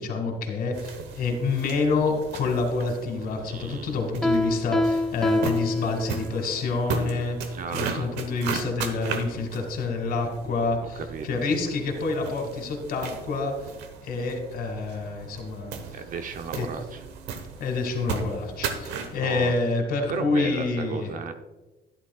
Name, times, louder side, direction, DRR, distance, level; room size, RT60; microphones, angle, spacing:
voice 1, 0.0-13.5 14.0-15.8 16.5-16.7 17.6-21.1, left 3 dB, 65° left, 3 dB, 2.2 m, -28 dB
sound 1, 0.7-19.2, right 5 dB, 90° right, 1.1 m, -37 dB
voice 2, 3.4-3.9 7.5-8.1 11.0-11.4 15.9-17.0 19.2-19.5 20.1-21.3, right 5 dB, 50° right, 7 dB, 0.8 m, -34 dB
Piano, 4.2-6.5, left 1 dB, 5° left, 0.6 m, -26 dB
12.0 x 10.0 x 2.4 m, 1.1 s
cardioid pair, 110°, 17 cm